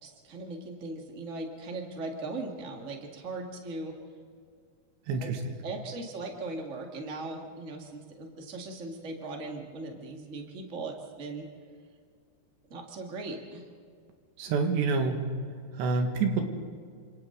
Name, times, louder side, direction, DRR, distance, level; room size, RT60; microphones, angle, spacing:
voice 1, 0.0-3.9 5.2-5.3 5.6-11.4 12.7-13.6, right 2 dB, 50° right, 2 dB, 0.9 m, -39 dB
voice 2, 5.1-5.4 14.4-15.2 15.8-16.4, right 4 dB, 85° right, 4 dB, 4.1 m, -27 dB
29.0 x 26.5 x 3.9 m, 2.1 s
omnidirectional pair, 4.9 m